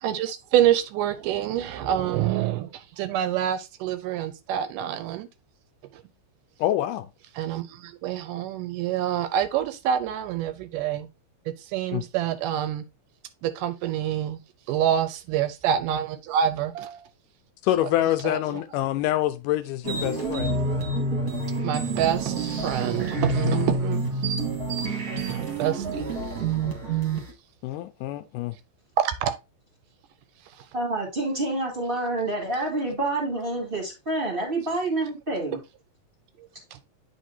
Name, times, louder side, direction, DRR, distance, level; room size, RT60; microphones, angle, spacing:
voice 1, 0.0-5.3 7.4-11.1 11.7-12.8 13.4-14.4 14.7-17.1 17.8-17.9 18.2-18.6 21.6-24.0 24.9-26.0 29.0-29.3 36.7-36.8, right 10 dB, 80° right, 2.1 m, -27 dB
voice 2, 6.6-7.1 11.9-12.0 17.6-20.5 23.4-23.7 27.6-28.6, left 14 dB, 80° left, 2.0 m, -26 dB
sound 1, 19.8-27.3, right 3 dB, 35° right, 1.6 m, -28 dB
voice 3, 30.7-35.6, right 2 dB, 20° right, 1.7 m, -28 dB
9.2 x 4.4 x 2.7 m
omnidirectional pair, 3.9 m